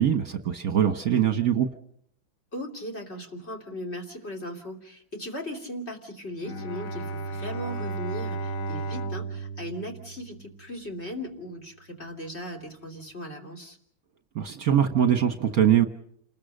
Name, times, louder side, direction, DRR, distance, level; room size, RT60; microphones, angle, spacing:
voice 1, 0.0-1.7 14.3-15.9, right 9 dB, 55° right, 8 dB, 1.5 m, -22 dB
voice 2, 2.5-13.8, equal, 35° left, 4 dB, 3.2 m, -38 dB
Bowed string instrument, 6.4-10.8, right 3 dB, 50° left, 1.5 m, -34 dB
28.5 x 20.0 x 6.5 m, 0.71 s
omnidirectional pair, 2.1 m